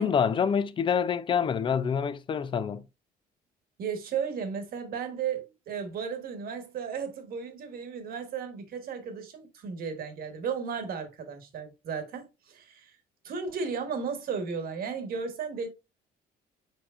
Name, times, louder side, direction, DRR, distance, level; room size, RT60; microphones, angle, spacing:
voice 1, 0.0-2.8, left 7 dB, 30° left, 0.4 m, -26 dB
voice 2, 3.8-12.9 13.2-15.7, right 6 dB, 60° right, 1.3 m, -34 dB
4.5 x 4.3 x 2.4 m
cardioid pair, 110°, 17 cm